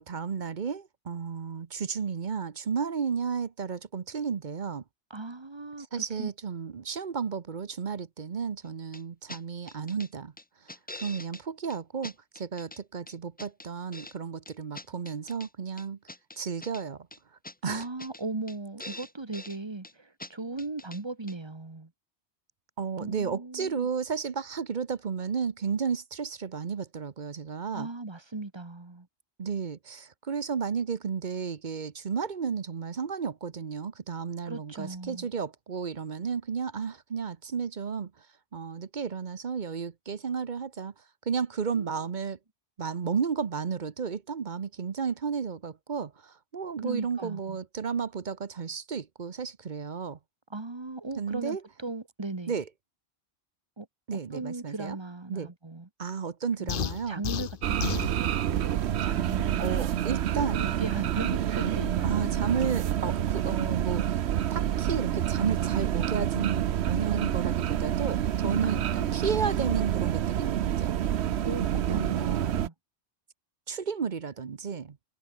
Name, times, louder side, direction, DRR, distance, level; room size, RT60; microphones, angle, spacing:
voice 1, 0.0-4.8 5.8-10.3 11.0-16.0 16.4-17.1 17.6-17.8 22.8-27.9 29.4-38.3 38.5-40.9 41.3-42.4 42.8-50.2 51.2-51.6 52.5-52.7 54.1-55.0 55.3-55.5 56.0-57.2 59.6-60.7 62.0-64.2 64.5-71.0 71.6-72.5 73.7-75.0, right 6 dB, 45° right, 1.0 m, -33 dB
voice 2, 5.1-5.9 6.2-6.3 17.6-21.9 23.0-23.9 27.7-29.1 34.5-35.3 41.7-42.1 46.8-47.6 50.5-52.5 53.8-53.9 54.1-55.9 56.6-59.7 60.4-62.3 68.6-69.2 71.4-72.7, right 3 dB, 25° right, 1.4 m, -38 dB
sound 1, 8.9-9.0 9.3-9.4 9.7-10.1 10.4-11.4 11.7-11.8 12.0-12.8 13.1-14.1 14.4-15.5 15.8-16.8 17.1-17.2 17.4-17.5 17.8-18.2 18.5-18.6 18.8-19.6 19.8-19.9 20.2-20.3 20.6-21.0 21.3-21.4, left 2 dB, 10° left, 0.5 m, -44 dB
sound 2, 56.7-58.1, left 9 dB, 55° left, 0.9 m, -31 dB
sound 3, 57.6-72.7, right 11 dB, 75° right, 1.0 m, -28 dB
omnidirectional pair, 1.1 m